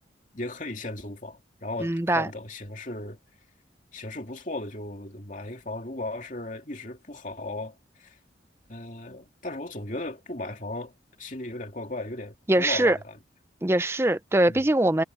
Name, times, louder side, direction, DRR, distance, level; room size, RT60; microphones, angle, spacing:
voice 1, 0.3-3.2 3.9-8.2 8.7-13.2 14.5-14.6, left 2 dB, 40° left, 2.6 m, -36 dB
voice 2, 1.8-2.3 12.5-13.0 13.6-15.0, right 1 dB, 15° right, 0.5 m, -22 dB
head